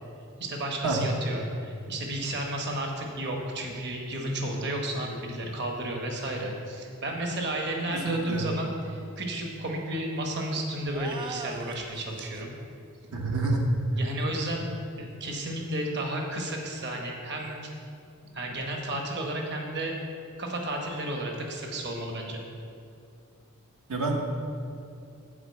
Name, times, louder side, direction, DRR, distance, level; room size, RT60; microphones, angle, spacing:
voice 1, 0.4-12.5 14.0-14.7 15.0-17.6 18.3-19.9 20.4-22.4, right 1 dB, 50° right, 1 dB, 1.1 m, -32 dB
voice 2, 7.9-8.4 13.1-13.7 23.9-24.2, right 3 dB, 80° right, 1 dB, 1.1 m, -27 dB
sound 1, 10.9-12.4, right 4 dB, 20° right, 0.3 m, -40 dB
8.8 x 4.6 x 7.5 m, 2.5 s
head